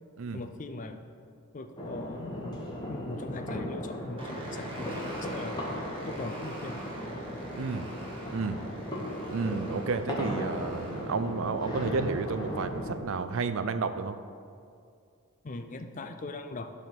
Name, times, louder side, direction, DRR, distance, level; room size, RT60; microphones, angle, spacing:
voice 1, 0.3-1.0 1.5-5.6 6.1-6.8 15.4-16.7, left 2 dB, 35° left, 7 dB, 0.4 m, -40 dB
sound 1, 1.8-13.0, equal, 20° left, 1.1 m, -37 dB
sound 2, 4.2-12.9, right 1 dB, 25° right, 1.4 m, -44 dB
voice 2, 7.5-7.9 8.3-8.6 9.3-14.2, right 4 dB, 60° right, 11 dB, 0.4 m, -31 dB
9.9 x 3.6 x 5.9 m, 2.3 s
head